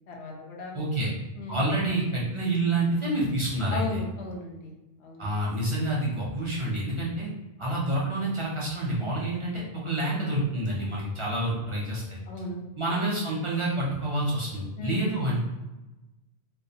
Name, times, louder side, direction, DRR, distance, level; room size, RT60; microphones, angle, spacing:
voice 1, 0.1-0.8 1.3-1.7 3.7-4.7 5.0-5.3 12.3-12.6 14.8-15.1, left 2 dB, 85° left, 0 dB, 0.9 m, -36 dB
voice 2, 0.7-1.1 1.5-4.0 5.2-7.3 7.6-12.2 12.8-15.4, right 1 dB, 40° right, -5 dB, 0.5 m, -28 dB
2.3 x 2.1 x 2.7 m, 1.0 s
omnidirectional pair, 1.1 m